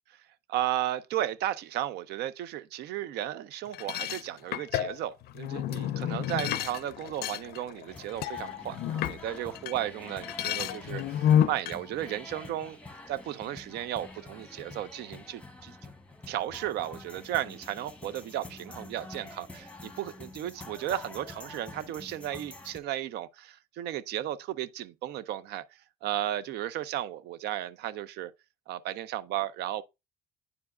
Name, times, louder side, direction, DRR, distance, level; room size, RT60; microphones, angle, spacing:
voice 1, 0.5-12.8 13.1-15.8 16.3-28.3 28.7-29.8, right 12 dB, 75° right, 0.5 m, -34 dB
sound 1, 3.7-9.8 10.1-11.8, left 10 dB, 70° left, 0.4 m, -30 dB
sound 2, 7.9-22.8, left 2 dB, 5° left, 1.0 m, -47 dB
9.6 x 4.7 x 2.4 m
cardioid pair, 110°, 17 cm